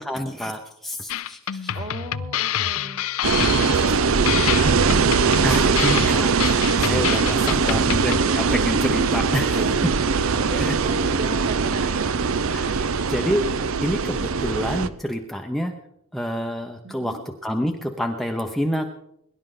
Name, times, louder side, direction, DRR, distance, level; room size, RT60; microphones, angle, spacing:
voice 1, 0.0-1.7 3.8-4.0 5.4-9.6 10.5-10.8 12.5-15.8 16.1-18.9, equal, ahead, 3 dB, 0.8 m, -28 dB
sound 1, 1.1-8.3, left 10 dB, 70° left, 0.5 m, -27 dB
voice 2, 1.7-3.0 3.4-4.8 9.5-9.9 10.3-12.3 16.8-17.3, right 1 dB, 40° right, 2 dB, 2.2 m, -37 dB
sound 2, 3.2-14.9, right 5 dB, 65° right, 0.6 m, -21 dB
22.0 x 11.5 x 3.8 m, 0.75 s
head